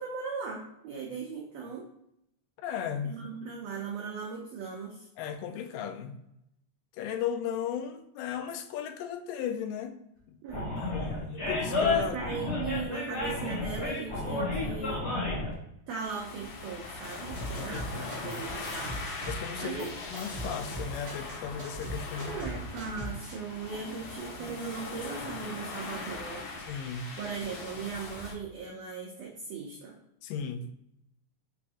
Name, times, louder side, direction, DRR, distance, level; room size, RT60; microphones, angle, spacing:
voice 1, 0.0-1.9 3.0-5.1 10.4-10.8 12.0-15.0 15.9-19.0 19.6-19.9 22.2-26.5 27.2-29.9, right 5 dB, 85° right, -1 dB, 1.4 m, -38 dB
voice 2, 2.6-3.2 5.2-6.2 6.9-10.0 10.8-12.2 17.6-18.5 19.3-22.5 26.7-27.2 30.2-30.7, left 8 dB, 85° left, 8 dB, 2.2 m, -36 dB
Animal, 10.5-15.5, left 3 dB, 40° left, 1.0 m, -31 dB
sound 1, 16.0-28.3, left 3 dB, 70° left, 2.1 m, -40 dB
sound 2, 17.3-18.4 18.7-23.3, right 1 dB, 60° right, 1.1 m, -40 dB
5.8 x 3.5 x 2.5 m, 0.79 s
omnidirectional pair, 3.8 m